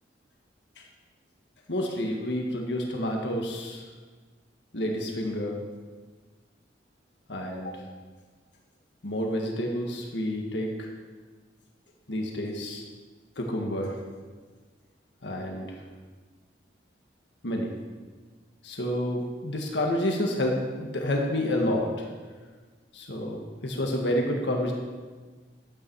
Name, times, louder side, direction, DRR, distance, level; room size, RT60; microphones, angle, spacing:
voice 1, 1.7-3.8 4.7-5.6 7.3-7.8 9.0-10.9 12.1-12.8 13.4-13.9 15.2-15.7 17.4-17.7 18.6-21.9 22.9-24.7, left 1 dB, 70° left, 0 dB, 1.7 m, -29 dB
12.0 x 9.0 x 4.7 m, 1.4 s
head